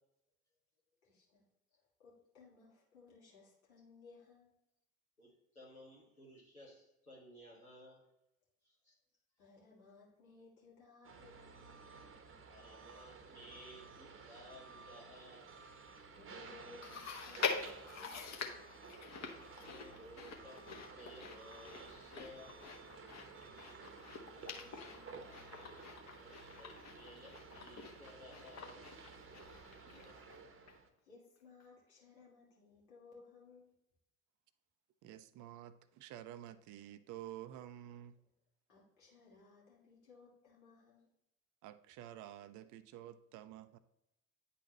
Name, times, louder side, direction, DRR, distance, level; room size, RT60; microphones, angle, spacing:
voice 1, 1.0-1.5 1.7-4.5 9.4-11.8 16.1-18.7 23.1-25.6 29.6-30.2 31.0-33.7 38.7-41.1, left 4 dB, 75° left, -4 dB, 2.2 m, -61 dB
voice 2, 5.2-8.1 8.6-8.9 12.5-15.5 18.7-18.8 19.6-22.6 26.2-28.9 29.9-30.1, equal, 90° left, -6 dB, 1.8 m, -57 dB
sound 1, 11.0-30.9, right 4 dB, 30° right, 0.9 m, -54 dB
Chewing mastication, 16.8-30.4 30.7-30.8 31.6-31.7, left 5 dB, 40° left, 1.1 m, -45 dB
voice 3, 35.0-38.1 41.6-43.8, right 12 dB, 45° right, 13 dB, 0.5 m, -50 dB
9.8 x 4.1 x 3.0 m, 0.88 s
figure-of-eight pair, 55°, 43 cm